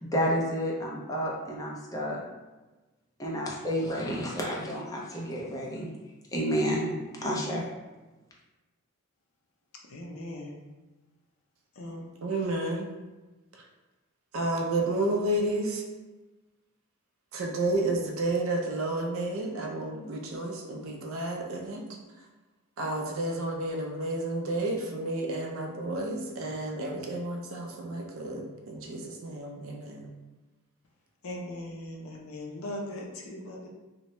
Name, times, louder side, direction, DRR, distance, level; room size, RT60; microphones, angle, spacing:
voice 1, 0.0-2.2 3.2-5.9 6.3-6.9 7.2-7.6, equal, 15° left, -3 dB, 0.4 m, -30 dB
voice 2, 9.9-10.6 11.8-12.1 31.2-33.7, left 1 dB, 70° left, 0 dB, 0.5 m, -39 dB
voice 3, 12.2-12.9 14.3-15.8 17.3-21.9 22.8-30.1, right 2 dB, 65° right, 1 dB, 0.5 m, -31 dB
2.6 x 2.1 x 3.0 m, 1.2 s
head